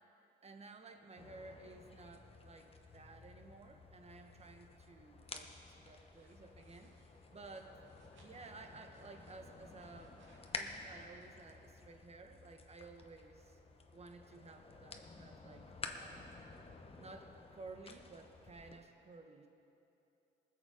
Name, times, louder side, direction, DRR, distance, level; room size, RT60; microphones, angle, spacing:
voice 1, 0.4-7.8 8.2-10.2 10.5-13.6 13.9-15.7 15.9-16.4 17.0-19.5, right 3 dB, 30° right, 5 dB, 1.3 m, -55 dB
sound 1, 1.2-18.8, left 3 dB, 30° left, 1.0 m, -52 dB
sound 2, 5.9-11.8, right 2 dB, 75° right, 2.4 m, -71 dB
20.0 x 6.9 x 5.1 m, 2.8 s
cardioid pair, 90°, 20 cm